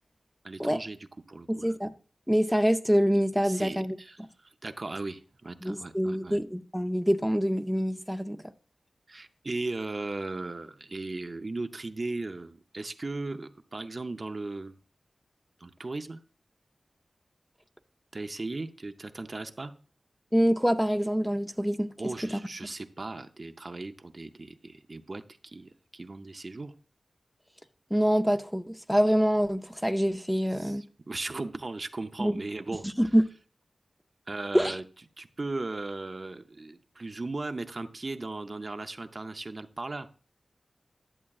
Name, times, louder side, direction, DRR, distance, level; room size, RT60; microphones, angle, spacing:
voice 1, 0.4-1.0 1.3-1.7 3.4-6.4 9.1-14.8 15.6-16.2 18.1-19.7 22.0-26.7 30.6-32.9 34.3-34.8 35.2-40.1, right 2 dB, 50° right, 0.6 m, -37 dB
voice 2, 1.5-1.9 2.3-4.0 5.6-8.4 20.3-21.9 27.9-30.8 32.2-32.4 33.0-33.2 34.5-34.8, equal, ahead, 0.5 m, -25 dB
11.0 x 7.2 x 2.4 m
cardioid pair, 50°, 0 cm